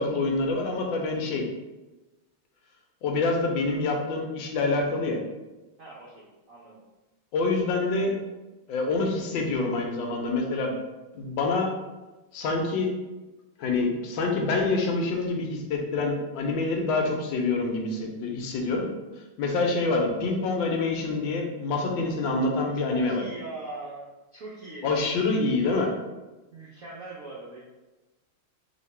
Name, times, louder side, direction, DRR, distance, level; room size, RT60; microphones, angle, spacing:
voice 1, 0.0-1.4 3.0-5.2 7.3-8.2 8.7-10.7 11.1-11.7 12.3-12.9 13.6-18.8 19.4-23.2 24.8-25.9, left 3 dB, 70° left, 1 dB, 1.2 m, -26 dB
voice 2, 5.8-6.8 22.7-24.9 26.5-27.6, right 2 dB, 75° right, -6 dB, 0.7 m, -41 dB
3.1 x 2.8 x 4.2 m, 1.1 s
omnidirectional pair, 2.4 m